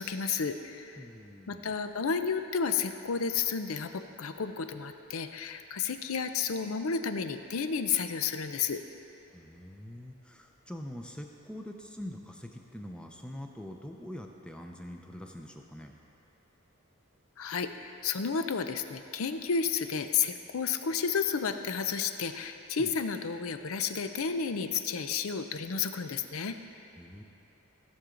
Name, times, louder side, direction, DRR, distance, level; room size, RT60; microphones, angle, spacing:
voice 1, 0.0-1.0 1.5-8.8 17.4-26.6, left 6 dB, 70° left, 9 dB, 0.6 m, -31 dB
voice 2, 1.0-1.8 9.3-16.0 22.8-22.9 27.0-27.2, left 1 dB, 5° left, 2 dB, 0.6 m, -44 dB
16.5 x 7.1 x 3.8 m, 3.0 s
head